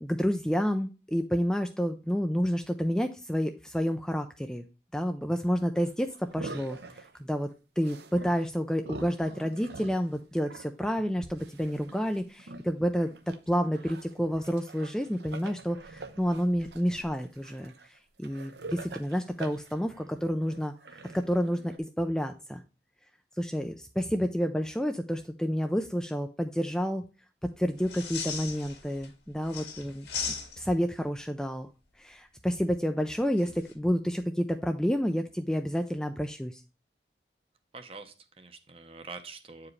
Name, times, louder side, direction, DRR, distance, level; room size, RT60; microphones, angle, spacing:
voice 1, 0.0-4.6 4.9-7.5 7.8-13.1 13.5-22.6 23.4-27.0 27.6-31.7 32.0-36.6, equal, 5° left, 6 dB, 0.3 m, -30 dB
sound 1, 5.8-7.2 7.8-8.4 8.8-13.4 13.7-21.8, right 3 dB, 75° right, 0.7 m, -45 dB
sound 2, 27.8-29.1 29.4-30.9 33.4-33.7, left 5 dB, 75° left, 1.9 m, -37 dB
voice 2, 37.7-39.7, right 4 dB, 35° right, 7 dB, 0.7 m, -45 dB
8.5 x 4.8 x 3.1 m, 0.32 s
head